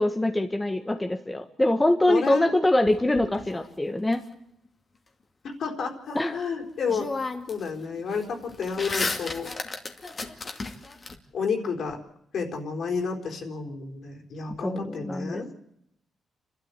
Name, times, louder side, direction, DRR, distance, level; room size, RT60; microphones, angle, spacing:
voice 1, 0.0-4.2 6.1-6.3 14.6-15.5, left 1 dB, 15° left, 5 dB, 1.6 m, -24 dB
voice 2, 2.1-2.5 5.4-7.1 7.5-9.5 11.3-12.0 12.3-15.5, left 5 dB, 65° left, 3 dB, 4.2 m, -30 dB
sound 1, 2.9-4.1 6.4-6.5 6.9-7.7 8.0-11.1, left 3 dB, 35° left, 2.4 m, -34 dB
30.0 x 12.5 x 8.4 m, 0.77 s
cardioid pair, 100°, 0 cm